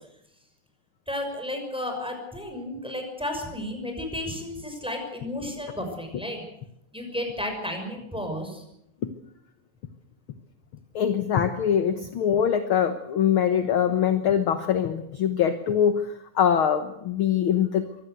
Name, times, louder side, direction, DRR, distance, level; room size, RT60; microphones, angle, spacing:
voice 1, 1.1-6.4 6.9-8.6, left 1 dB, ahead, 3 dB, 6.0 m, -33 dB
voice 2, 10.9-16.1 16.3-18.1, left 8 dB, 55° left, 9 dB, 1.6 m, -23 dB
24.0 x 17.0 x 8.2 m, 0.79 s
omnidirectional pair, 3.5 m